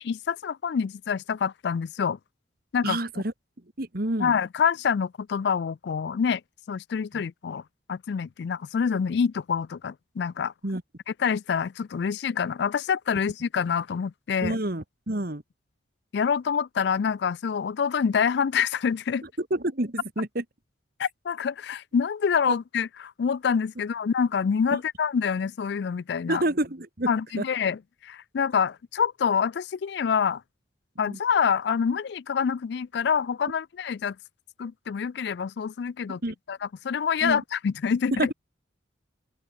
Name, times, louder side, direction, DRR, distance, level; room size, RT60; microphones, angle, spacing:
voice 1, 0.1-2.2 2.7-3.0 4.2-6.4 6.7-7.6 7.9-10.5 11.2-14.6 16.1-19.3 21.0-26.4 27.1-30.4 31.0-34.2 34.6-36.2 36.5-38.3, left 6 dB, 55° left, 0.3 m, -26 dB
voice 2, 2.8-3.3 3.8-4.3 7.1-7.2 10.6-10.8 14.4-15.4 19.4-20.4 22.5-22.6 26.3-27.1 27.4-27.5 31.1-31.2 36.1-36.4 37.2-37.4 38.1-38.3, right 1 dB, 50° right, 1.8 m, -28 dB
open air
head